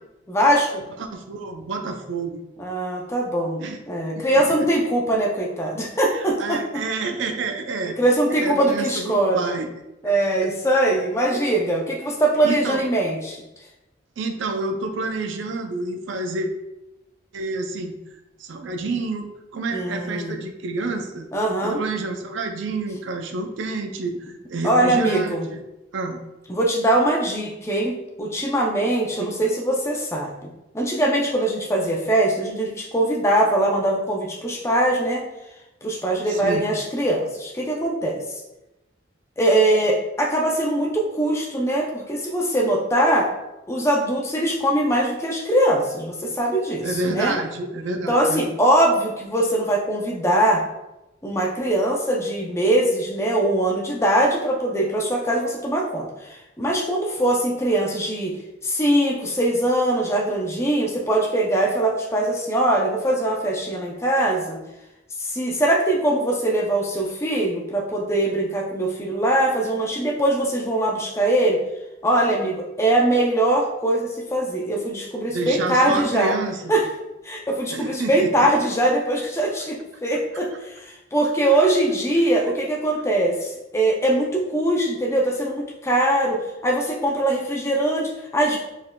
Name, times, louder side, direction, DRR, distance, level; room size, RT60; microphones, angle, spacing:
voice 1, 0.3-0.8 2.6-3.6 3.9-6.6 8.0-9.5 10.0-13.4 19.7-20.3 21.3-21.8 24.6-25.5 26.5-35.2 35.8-38.4 39.4-43.3 43.7-47.4 48.1-50.6 51.2-58.4 58.6-64.6 65.2-71.6 72.0-76.3 76.7-76.8 77.2-88.6, right 1 dB, 15° left, -1 dB, 0.4 m, -22 dB
voice 2, 1.0-2.4 3.6-3.8 4.2-4.8 6.0-8.0 8.3-9.7 10.0-10.1 12.4-12.8 14.2-16.5 17.3-17.9 18.4-19.3 19.5-21.3 21.6-25.6 25.9-26.2 29.2-29.3 36.3-36.6 46.8-48.5 75.3-76.7 77.7-78.5 81.4-81.6 82.2-82.3, right 3 dB, 70° right, 5 dB, 0.4 m, -29 dB
4.3 x 3.5 x 2.2 m, 0.95 s
head